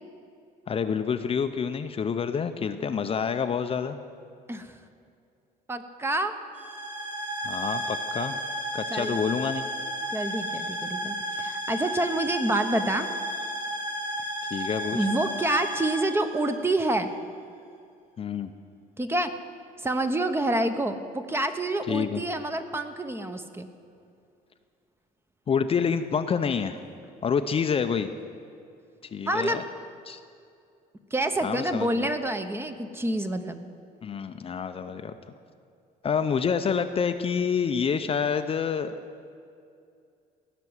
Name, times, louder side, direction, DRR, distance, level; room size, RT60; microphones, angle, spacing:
voice 1, 0.7-4.0 7.4-8.4 8.7-9.7 14.5-15.1 18.2-18.5 21.9-22.2 25.5-26.8 27.2-28.1 29.0-29.6 30.1-30.2 31.4-32.1 34.0-35.1 36.0-38.9, left 6 dB, 35° left, 8 dB, 0.6 m, -27 dB
voice 2, 5.7-6.3 8.9-9.1 10.1-13.1 14.9-17.1 19.0-19.3 19.8-23.7 29.3-29.6 31.1-33.7, right 1 dB, 15° right, 8 dB, 0.9 m, -27 dB
sound 1, 6.5-17.1, equal, 40° right, 4.3 m, -33 dB
17.0 x 6.0 x 9.7 m, 2.4 s
cardioid pair, 110°, 17 cm